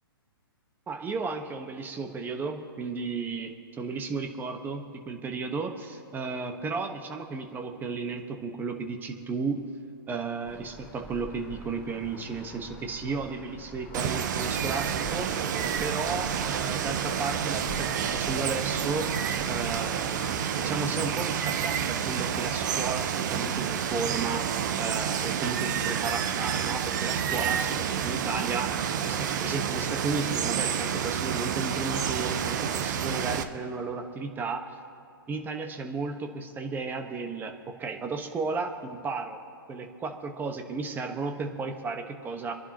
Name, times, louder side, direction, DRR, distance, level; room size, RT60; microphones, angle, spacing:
voice 1, 0.9-9.6 10.1-19.1 19.5-24.4 24.8-28.7 29.0-34.7 35.3-37.5 37.8-39.4 39.7-42.5, right 4 dB, 15° right, 5 dB, 1.4 m, -34 dB
sound 1, 10.4-20.7, left 1 dB, 20° left, 3.7 m, -46 dB
Water, 13.9-33.4, right 8 dB, 50° right, 1.0 m, -29 dB
28.0 x 11.0 x 3.0 m, 2.5 s
figure-of-eight pair, 120°, 13 cm